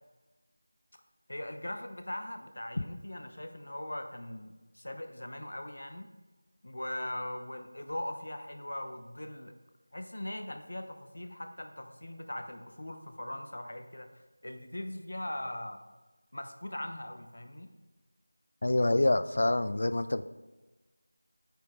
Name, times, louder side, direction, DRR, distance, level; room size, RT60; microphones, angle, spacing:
voice 1, 1.3-6.1 6.6-9.5 9.9-14.1 14.4-15.8 16.3-17.7, left 1 dB, 60° left, 6 dB, 0.9 m, -40 dB
voice 2, 18.6-20.3, left 2 dB, 45° left, 12 dB, 0.4 m, -26 dB
8.9 x 5.1 x 3.7 m, 1.2 s
figure-of-eight pair, 175°, 0 cm